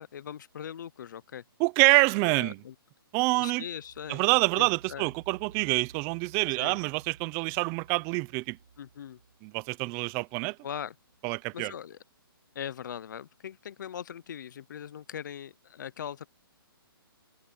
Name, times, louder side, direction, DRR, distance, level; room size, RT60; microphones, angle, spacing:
voice 1, 0.0-1.4 2.4-2.7 3.3-4.2 4.6-5.1 6.6-6.8 8.8-9.2 10.6-10.9 11.5-12.0 12.5-16.3, left 9 dB, 55° left, 0.8 m, -40 dB
voice 2, 1.6-2.6 3.1-3.6 4.1-8.6 9.4-10.6 11.2-11.7, right 26 dB, 20° right, 0.7 m, -26 dB
sound 1, 3.5-11.2, right 7 dB, 70° right, 5.6 m, -55 dB
open air
hypercardioid pair, 155°, 12 cm